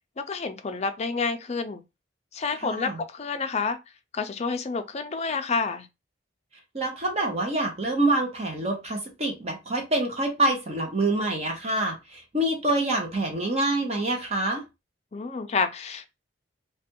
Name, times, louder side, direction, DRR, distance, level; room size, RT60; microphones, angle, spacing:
voice 1, 0.2-1.8 2.3-3.8 4.1-5.9 15.1-16.1, left 4 dB, 35° left, 0.4 m, -29 dB
voice 2, 2.6-3.0 6.7-14.6, right 2 dB, 35° right, 0.7 m, -26 dB
3.2 x 2.2 x 2.9 m
head